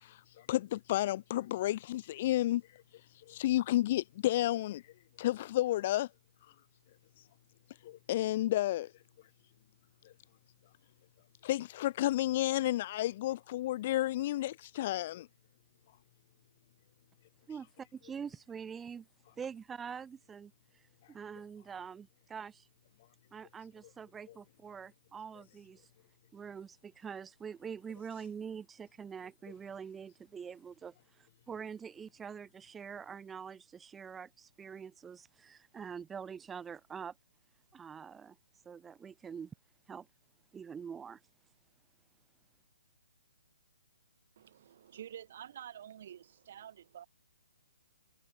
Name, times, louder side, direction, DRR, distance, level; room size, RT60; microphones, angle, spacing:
voice 1, 0.0-2.6 3.3-4.8 5.2-6.1 7.8-8.9 11.4-15.3, left 14 dB, 35° left, 1.6 m, -31 dB
voice 2, 17.5-19.1 19.4-22.7 23.3-25.9 26.3-37.1 37.7-38.4 38.6-39.5 39.9-40.1 40.5-41.2, right 7 dB, 10° right, 4.9 m, -45 dB
voice 3, 44.4-47.1, right 10 dB, 45° right, 7.2 m, -49 dB
hypercardioid pair, 160°, 0 cm